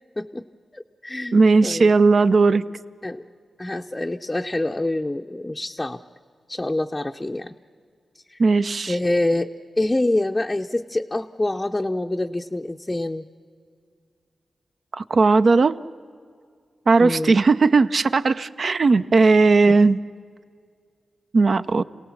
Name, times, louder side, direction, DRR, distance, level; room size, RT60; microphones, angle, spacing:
voice 1, 0.7-1.9 3.0-3.2 3.6-6.0 6.5-7.5 8.3-8.4 8.9-13.2 17.0-17.4 19.7-19.8, left 1 dB, 20° left, 3 dB, 0.6 m, -26 dB
voice 2, 1.3-2.6 8.4-8.9 15.0-15.8 16.9-20.0 21.3-21.8, right 3 dB, 60° right, 12 dB, 0.6 m, -17 dB
27.5 x 17.5 x 7.2 m, 2.1 s
cardioid pair, 65°, 0 cm